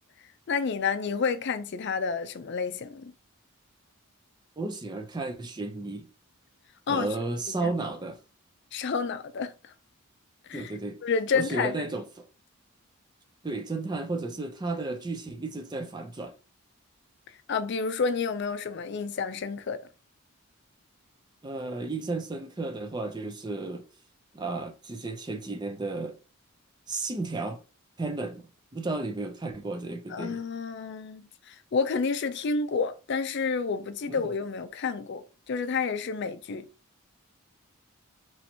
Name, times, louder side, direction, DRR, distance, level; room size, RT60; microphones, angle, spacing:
voice 1, 0.5-3.1 6.9-7.1 7.5-7.7 8.7-9.5 10.5-10.7 11.0-11.9 17.5-19.8 30.1-36.7, left 5 dB, 50° left, 0.4 m, -30 dB
voice 2, 4.6-6.1 6.9-8.2 10.5-11.0 11.3-12.2 13.4-16.3 21.4-23.8 24.3-26.2 26.9-27.6 28.0-28.5 28.7-30.4 34.1-34.3, right 2 dB, 20° right, 0.5 m, -33 dB
3.1 x 2.8 x 4.3 m
head